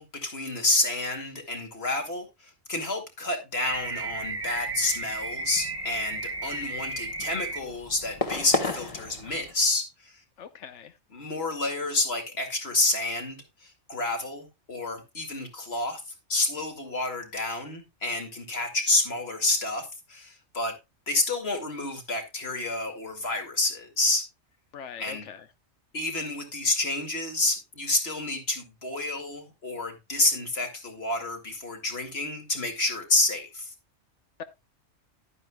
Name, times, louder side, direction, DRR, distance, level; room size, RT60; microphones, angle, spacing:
voice 1, 0.0-10.2 11.1-16.0 16.3-20.8 21.1-24.3 25.0-25.3 25.9-33.7, left 2 dB, 60° left, 2.5 m, -29 dB
sound 1, 3.6-7.6, right 3 dB, 25° right, 0.9 m, -34 dB
sound 2, 3.7-9.5, left 3 dB, 30° left, 1.1 m, -36 dB
voice 2, 10.4-10.9 24.7-25.4, left 7 dB, 90° left, 1.1 m, -42 dB
11.0 x 9.7 x 2.2 m
omnidirectional pair, 1.2 m